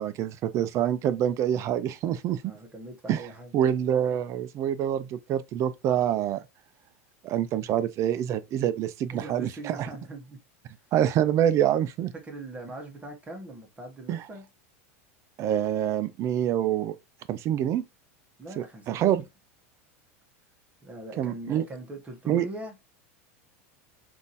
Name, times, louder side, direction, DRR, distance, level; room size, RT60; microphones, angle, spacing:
voice 1, 0.0-2.5 3.1-3.2 3.5-6.4 7.2-9.9 10.9-12.1 14.1-14.2 15.4-17.0 17.3-17.8 18.6-19.2 21.2-21.7 22.3-22.5, right 10 dB, 40° right, 0.4 m, -26 dB
voice 2, 2.4-3.6 9.1-10.4 12.2-14.4 18.4-19.2 20.8-22.7, right 2 dB, 15° right, 1.1 m, -41 dB
3.6 x 2.6 x 2.6 m
hypercardioid pair, 115°, 8 cm